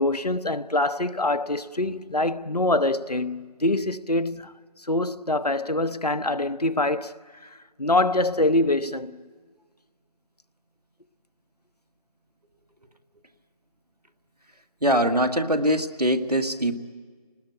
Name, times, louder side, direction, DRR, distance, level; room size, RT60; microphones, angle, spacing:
voice 1, 0.0-7.1 7.4-9.2, left 2 dB, 85° left, 0.9 m, -25 dB
voice 2, 14.8-16.7, equal, 80° right, 1.7 m, -22 dB
28.0 x 19.5 x 9.1 m
figure-of-eight pair, 170°, 20 cm